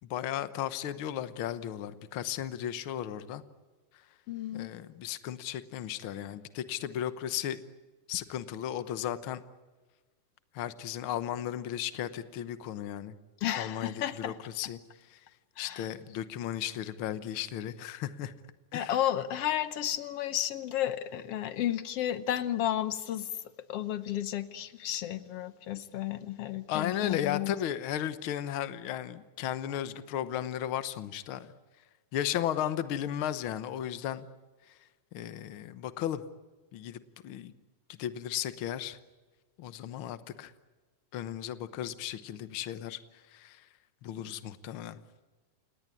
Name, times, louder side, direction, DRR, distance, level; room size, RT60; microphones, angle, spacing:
voice 1, 0.1-3.4 4.5-7.6 8.1-9.4 10.5-13.1 13.6-14.8 15.1-15.2 15.6-18.3 18.7-19.0 26.7-31.5 32.1-34.3 34.7-34.8 35.1-36.2 36.7-37.5 38.0-39.0 39.6-40.5 41.1-43.0 43.3-43.7 44.0-45.0, left 11 dB, 90° left, 13 dB, 1.1 m, -35 dB
voice 2, 4.3-4.7 13.4-14.4 15.6-15.9 18.7-23.3 23.7-27.5, left 12 dB, 70° left, 13 dB, 1.4 m, -32 dB
28.5 x 18.5 x 9.8 m, 1.3 s
omnidirectional pair, 3.8 m